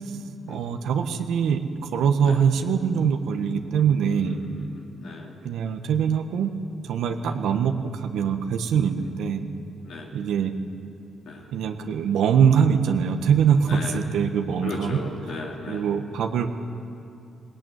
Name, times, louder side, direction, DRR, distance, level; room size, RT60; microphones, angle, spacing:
voice 1, 0.5-4.4 5.4-6.5 6.8-9.4 10.1-10.5 11.5-15.0 15.7-16.5, right 7 dB, 85° right, 5 dB, 1.3 m, -23 dB
voice 2, 4.2-5.3 7.2-7.3 9.8-10.1 11.3-11.5 13.7-14.0 14.6-15.9, left 3 dB, 75° left, -2 dB, 2.8 m, -37 dB
19.5 x 18.5 x 9.3 m, 2.5 s
cardioid pair, 90°, 0 cm